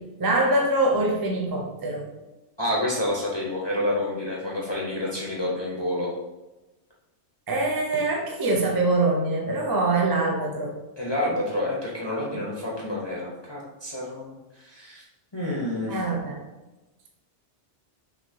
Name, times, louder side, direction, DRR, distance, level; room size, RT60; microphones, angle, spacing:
voice 1, 0.2-2.0 7.5-10.7 12.3-12.4 15.9-16.4, right 2 dB, 25° right, -1 dB, 0.5 m, -24 dB
voice 2, 2.6-6.1 11.0-14.4 14.6-15.0 15.3-16.0, left 1 dB, 25° left, -5 dB, 0.9 m, -28 dB
6.0 x 2.8 x 2.9 m, 1.1 s
omnidirectional pair, 1.2 m